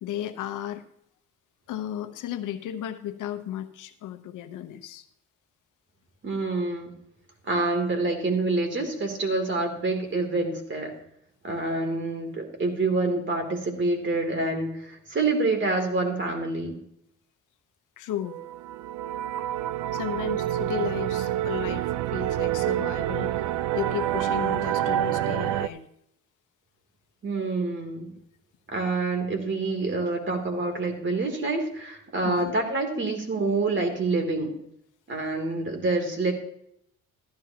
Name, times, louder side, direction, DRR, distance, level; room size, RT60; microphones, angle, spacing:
voice 1, 0.0-0.8 1.7-5.1 18.0-18.4 19.9-23.5 23.7-25.9 32.2-32.5, left 11 dB, 85° left, 9 dB, 1.0 m, -34 dB
voice 2, 6.2-7.0 7.4-10.9 11.4-16.8 27.2-28.1 28.7-34.5 35.1-36.3, right 3 dB, 40° right, 4 dB, 3.0 m, -27 dB
sound 1, 18.2-25.7, right 12 dB, 85° right, 0.5 m, -27 dB
15.0 x 11.5 x 2.9 m, 0.73 s
cardioid pair, 90°, 30 cm